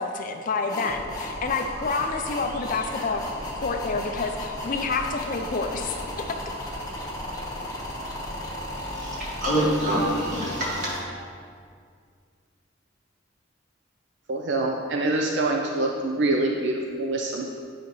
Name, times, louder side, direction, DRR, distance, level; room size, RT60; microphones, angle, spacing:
voice 1, 0.0-3.2 3.6-5.9, left 4 dB, 40° left, 5 dB, 0.4 m, -28 dB
sound 1, 0.7-11.0, left 1 dB, 20° left, 1.1 m, -34 dB
voice 2, 8.9-10.9, right 1 dB, 40° right, -6 dB, 1.8 m, -26 dB
voice 3, 14.3-17.5, right 2 dB, 60° right, 1 dB, 0.5 m, -25 dB
9.8 x 5.0 x 3.1 m, 2.2 s
head